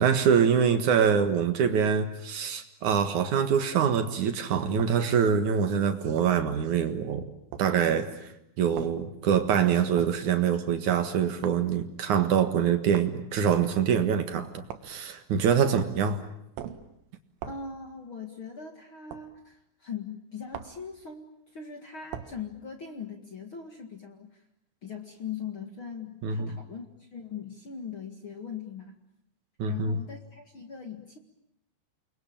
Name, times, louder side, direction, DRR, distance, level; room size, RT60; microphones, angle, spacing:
voice 1, 0.0-7.2 7.6-8.3 8.6-16.2 26.2-26.5 29.6-30.0, right 7 dB, 60° right, 8 dB, 2.1 m, -25 dB
sound 1, 4.8-5.0 6.2-6.4 7.5-7.7 8.8-9.0 10.0-10.2 11.4-11.7 12.9-13.1 14.7-15.0 15.8-16.1 16.6-16.9 17.4-17.7 19.1-19.3 20.5-20.8 22.1-22.4, right 10 dB, 80° right, 4.0 m, -40 dB
voice 2, 17.4-24.4 24.8-29.0 29.7-31.2, left 6 dB, 60° left, 5 dB, 1.3 m, -40 dB
29.0 x 22.5 x 8.9 m, 0.79 s
omnidirectional pair, 5.6 m